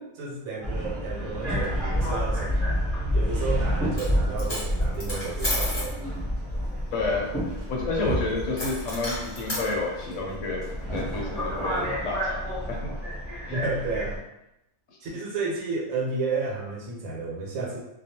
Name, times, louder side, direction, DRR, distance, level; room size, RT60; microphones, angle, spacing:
voice 1, 0.1-2.6 3.1-6.1 13.5-14.2 15.0-17.8, right 3 dB, 80° right, -2 dB, 1.0 m, -32 dB
Subway metro underground, 0.6-14.2, equal, 25° right, 0.9 m, -29 dB
Coin (dropping), 3.8-4.1 4.4-5.9 8.6-9.7, left 1 dB, 35° left, 0.9 m, -32 dB
voice 2, 6.9-12.9 13.4-13.6, left 3 dB, 70° left, -2 dB, 0.9 m, -30 dB
2.4 x 2.2 x 2.8 m, 0.85 s
omnidirectional pair, 1.5 m